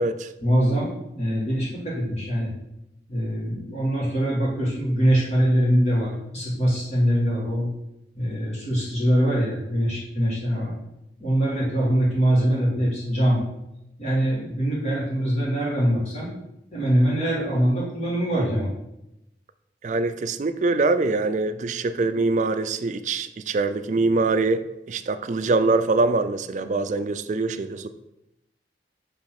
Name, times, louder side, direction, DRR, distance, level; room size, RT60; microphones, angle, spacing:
voice 1, 0.4-2.5 3.1-7.7 8.2-10.7 11.2-13.4 14.0-16.3 16.7-18.7, equal, 40° left, -6 dB, 1.8 m, -23 dB
voice 2, 19.8-27.9, right 3 dB, 40° right, 9 dB, 0.3 m, -24 dB
6.7 x 3.2 x 5.8 m, 0.89 s
head